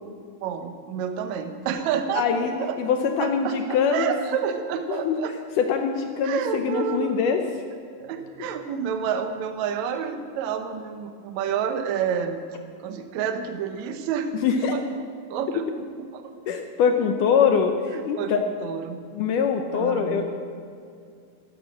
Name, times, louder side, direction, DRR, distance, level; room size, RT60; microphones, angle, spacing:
voice 1, 0.4-2.3 2.6-2.8 3.2-5.3 6.2-7.1 8.0-12.4 12.8-14.3 14.7-14.8 15.3-15.7 16.1-16.2 18.2-19.0 19.7-20.3, right 8 dB, 85° right, 7 dB, 1.6 m, -29 dB
voice 2, 2.1-4.1 4.9-5.2 5.6-7.4 14.4-14.7 16.5-18.4 19.1-20.3, left 6 dB, 75° left, 5 dB, 1.9 m, -23 dB
14.0 x 13.5 x 6.4 m, 2.4 s
omnidirectional pair, 4.6 m